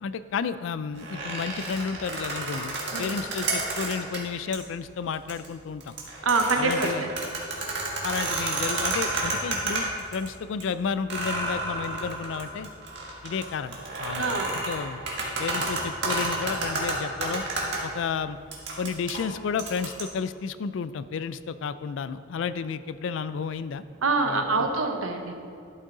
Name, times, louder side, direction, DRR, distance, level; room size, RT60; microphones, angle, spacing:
voice 1, 0.0-6.0 6.6-7.1 8.0-12.7 13.2-15.0 15.4-17.4 17.8-18.4 18.8-23.8 24.2-24.7, left 6 dB, 65° left, 14 dB, 0.3 m, -32 dB
sound 1, 1.0-4.2 4.5-4.6 5.1-5.5 5.8-10.3 10.6-10.7 11.1-17.8 18.5-20.0, right 2 dB, 55° right, 1.6 m, -30 dB
voice 2, 6.2-7.1 14.2-14.6 24.0-25.3, right 3 dB, 85° right, 4 dB, 1.0 m, -25 dB
12.0 x 6.4 x 3.9 m, 2.4 s
head